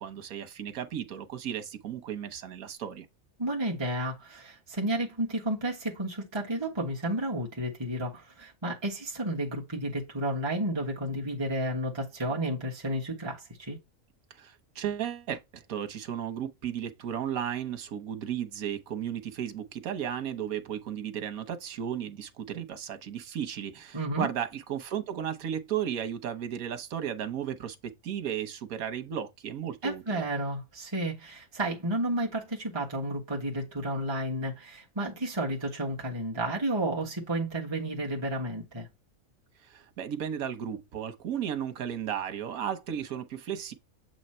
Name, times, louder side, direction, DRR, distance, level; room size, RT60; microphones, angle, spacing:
voice 1, 0.0-3.1 14.3-30.2 39.6-43.7, right 9 dB, 85° right, 1.3 m, -34 dB
voice 2, 3.4-13.8 23.9-24.3 29.8-38.9, right 1 dB, 20° right, 1.3 m, -32 dB
7.7 x 3.0 x 4.3 m
omnidirectional pair, 1.4 m